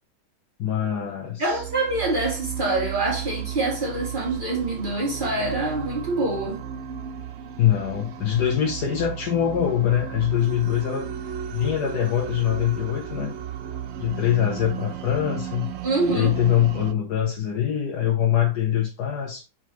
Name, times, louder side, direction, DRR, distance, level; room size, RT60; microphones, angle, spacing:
voice 1, 0.6-1.6 7.6-11.1 11.5-13.3 14.0-15.7 16.1-19.4, left 10 dB, 75° left, 1.5 m, -23 dB
voice 2, 1.4-6.6 15.8-16.3, right 2 dB, 30° right, 2.6 m, -25 dB
sound 1, 1.5-16.9, right 9 dB, 80° right, 0.6 m, -34 dB
6.1 x 5.0 x 3.1 m
omnidirectional pair, 1.8 m